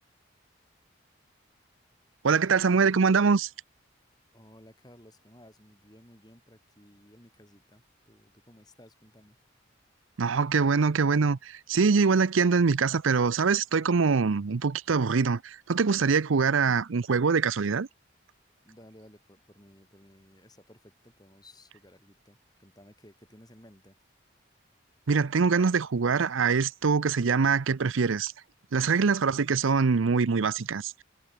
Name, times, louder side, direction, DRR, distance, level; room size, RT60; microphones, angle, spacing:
voice 1, 2.2-3.5 10.2-17.9 25.1-28.3 28.7-31.0, right 5 dB, 90° right, 0.6 m, -24 dB
voice 2, 4.3-9.4 18.6-24.0 29.2-29.5, left 1 dB, 20° left, 6.3 m, -56 dB
head